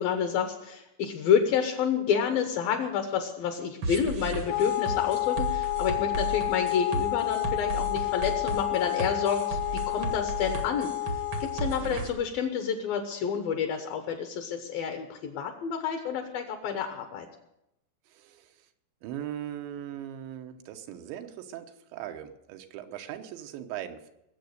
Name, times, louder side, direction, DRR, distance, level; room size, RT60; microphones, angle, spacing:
voice 1, 0.0-17.3, left 7 dB, 70° left, 5 dB, 2.5 m, -29 dB
sound 1, 3.8-12.1, right 3 dB, 70° right, 1.3 m, -34 dB
Wind instrument woodwind instrument, 4.5-11.9, left 17 dB, 85° left, 3.4 m, -30 dB
voice 2, 18.1-18.7 19.0-24.1, right 11 dB, 90° right, 7 dB, 3.3 m, -40 dB
20.5 x 7.9 x 6.5 m, 0.87 s
omnidirectional pair, 5.0 m